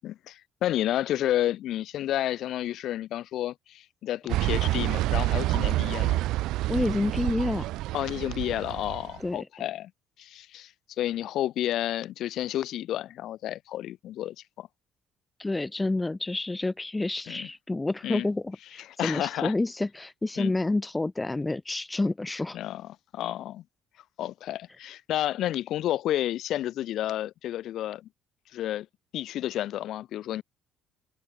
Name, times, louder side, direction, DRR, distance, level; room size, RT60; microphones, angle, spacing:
voice 1, 0.0-6.2 7.9-9.9 10.2-10.7 11.0-14.7 17.3-17.5 18.0-18.3 19.0-19.5 20.4-20.5 22.5-23.6 24.2-28.1 28.5-28.9 29.1-30.4, left 13 dB, 65° left, 6.9 m, -31 dB
sound 1, 4.3-9.1, right 16 dB, 70° right, 4.3 m, -28 dB
voice 2, 6.7-7.7 9.2-9.5 15.4-22.6, left 2 dB, 15° left, 3.4 m, -29 dB
hypercardioid pair, 55°, 0 cm